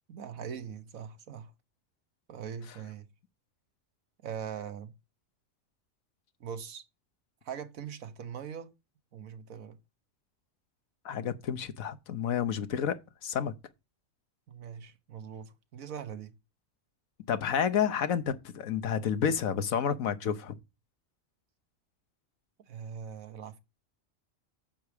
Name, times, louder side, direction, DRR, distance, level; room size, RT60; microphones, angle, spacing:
voice 1, 0.1-1.5 2.3-3.1 4.2-4.9 6.4-6.8 7.4-8.7 9.1-9.8 14.5-16.3 22.7-23.6, right 7 dB, 85° right, 1.5 m, -41 dB
voice 2, 11.0-13.5 17.3-20.6, left 8 dB, 90° left, 1.4 m, -30 dB
9.3 x 7.1 x 5.0 m
omnidirectional pair, 1.4 m